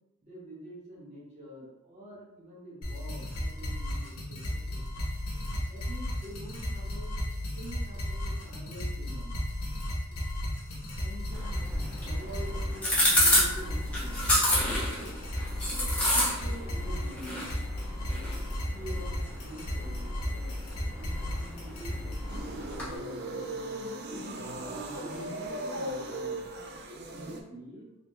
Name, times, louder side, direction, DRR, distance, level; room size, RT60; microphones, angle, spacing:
voice 1, 0.2-5.0 5.6-7.1 7.5-9.4 11.0-11.5 12.0-14.3 14.8-15.1 15.4-17.6 18.0-18.3 18.7-19.1 19.4-20.5 20.9-23.5 24.1-26.5 27.1-27.9, right 1 dB, 30° right, -8 dB, 1.3 m, -46 dB
sound 1, 2.8-22.4, left 1 dB, 80° left, 1.1 m, -34 dB
sound 2, 11.3-23.0, left 1 dB, 5° left, 0.8 m, -30 dB
sound 3, 22.3-27.4, right 1 dB, 45° right, 0.4 m, -37 dB
3.6 x 3.3 x 2.3 m, 0.90 s
head